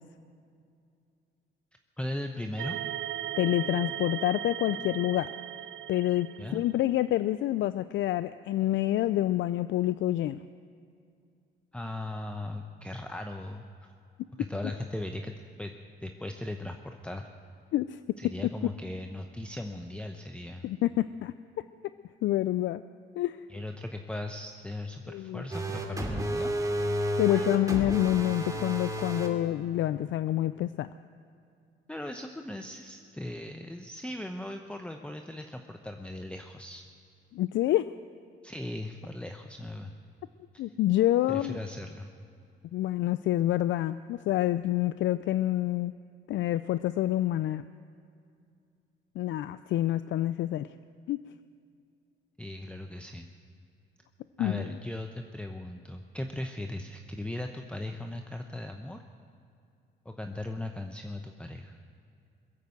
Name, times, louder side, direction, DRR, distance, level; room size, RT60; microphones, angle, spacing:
voice 1, 2.0-2.8 6.4-6.6 11.7-13.9 14.4-15.7 16.0-17.3 18.2-20.7 23.5-26.5 27.3-27.6 31.9-36.9 38.4-39.9 40.5-40.7 41.3-42.1 52.4-53.3 54.4-59.0 60.0-61.8, left 1 dB, 5° left, 5 dB, 0.8 m, -38 dB
sound 1, 2.6-6.9, right 12 dB, 80° right, 0.5 m, -37 dB
voice 2, 3.4-5.3 5.9-10.4 17.7-18.2 20.6-21.9 22.2-22.8 23.2-23.4 25.1-25.4 27.2-30.9 37.3-37.9 40.6-41.6 42.7-45.9 46.3-47.6 49.2-50.7 51.1-51.2 54.4-54.7, left 14 dB, 70° left, 14 dB, 0.4 m, -27 dB
sound 2, 25.5-29.3, equal, 15° right, 2.5 m, -31 dB
21.5 x 8.2 x 7.8 m, 2.4 s
cardioid pair, 90°, 20 cm